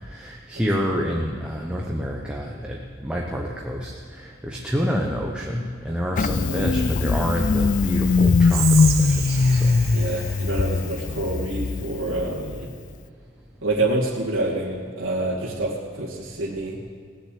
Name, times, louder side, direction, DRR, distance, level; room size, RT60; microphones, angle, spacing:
voice 1, 0.0-9.8, equal, 5° right, -2 dB, 1.0 m, -28 dB
Engine starting, 6.2-12.6, left 4 dB, 40° left, 0.4 m, -21 dB
voice 2, 6.5-6.8 9.9-12.7 13.6-16.8, right 2 dB, 70° right, -6 dB, 2.3 m, -27 dB
Whispering, 8.4-11.7, right 8 dB, 50° right, 1.2 m, -32 dB
18.5 x 7.0 x 8.5 m, 2.1 s
head